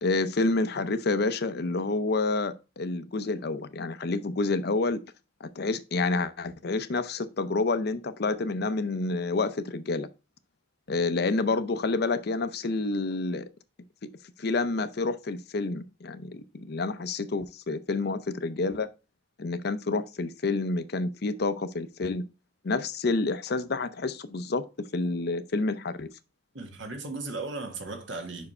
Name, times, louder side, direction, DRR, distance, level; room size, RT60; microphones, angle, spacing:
voice 1, 0.0-5.0 5.4-10.1 10.9-13.4 14.4-18.9 19.4-22.2 22.6-26.1, left 3 dB, 60° left, 0.6 m, -28 dB
voice 2, 26.5-28.5, right 3 dB, 90° right, 1.5 m, -36 dB
5.3 x 4.7 x 4.2 m
head